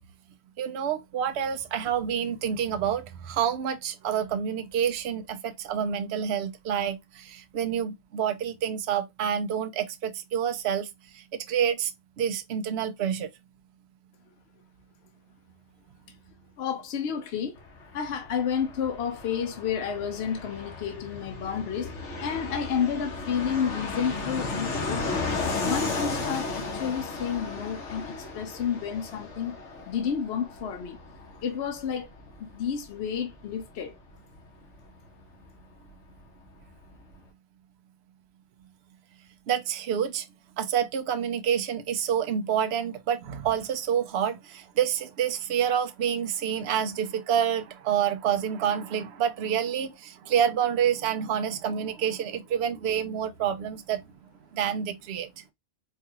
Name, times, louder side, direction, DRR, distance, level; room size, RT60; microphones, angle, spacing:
voice 1, 0.6-10.9 11.1-11.9 12.2-13.3 39.5-40.3 40.6-54.0 54.5-55.4, right 8 dB, 70° right, 0.9 m, -28 dB
voice 2, 16.6-17.6 17.9-21.9 22.2-25.3 25.6-29.6 29.9-31.0 31.4-32.1 32.4-34.0, left 7 dB, 70° left, 0.8 m, -30 dB
Fixed-wing aircraft airplane, 17.6-35.9 36.2-36.3 36.5-37.2, left 3 dB, 90° left, 1.4 m, -35 dB
4.7 x 2.4 x 2.8 m
omnidirectional pair, 1.2 m